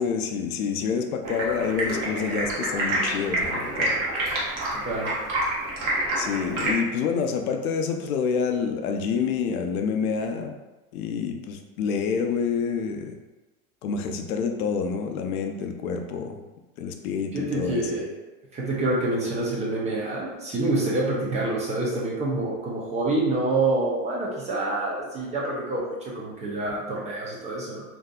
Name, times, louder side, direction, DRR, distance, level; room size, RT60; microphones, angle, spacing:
voice 1, 0.0-4.0 6.2-10.5 10.9-13.2 13.8-16.4 16.8-18.0, left 6 dB, 80° left, 5 dB, 0.5 m, -27 dB
Stream, 1.2-6.7, right 1 dB, 45° right, 1.0 m, -28 dB
voice 2, 4.7-5.1 17.3-18.1 18.5-27.8, right 2 dB, 15° right, -5 dB, 0.4 m, -27 dB
2.6 x 2.4 x 2.3 m, 1.1 s
hypercardioid pair, 115°, 42 cm